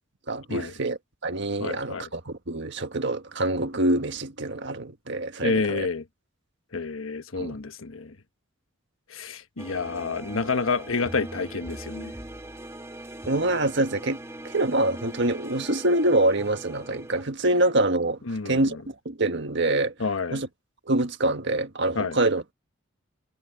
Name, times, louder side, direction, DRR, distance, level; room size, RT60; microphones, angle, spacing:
voice 1, 0.3-5.9 7.4-7.6 13.3-14.2 14.4-18.2 18.5-19.9 20.3-20.5 20.9-22.4, right 2 dB, 60° right, 1.6 m, -25 dB
voice 2, 1.6-2.1 5.4-6.0 6.7-8.1 9.1-12.1 18.3-18.8 20.0-20.4 21.9-22.2, left 4 dB, 80° left, 1.2 m, -29 dB
sound 1, 9.6-17.2, right 1 dB, 15° right, 1.8 m, -40 dB
head